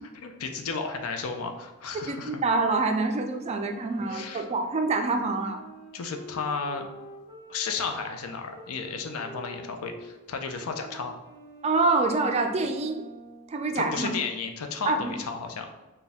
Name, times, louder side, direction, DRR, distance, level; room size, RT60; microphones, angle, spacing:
voice 1, 0.2-2.4 4.1-4.5 5.9-6.9 7.5-11.1 13.7-15.7, left 5 dB, 80° left, 5 dB, 0.5 m, -33 dB
voice 2, 2.1-5.6 11.6-13.0 13.5-14.1 14.9-15.1, right 3 dB, 30° right, 5 dB, 0.3 m, -26 dB
sound 1, 3.4-10.2 10.6-13.6, right 1 dB, 25° left, 1.1 m, -47 dB
4.1 x 2.2 x 3.4 m, 1.1 s
head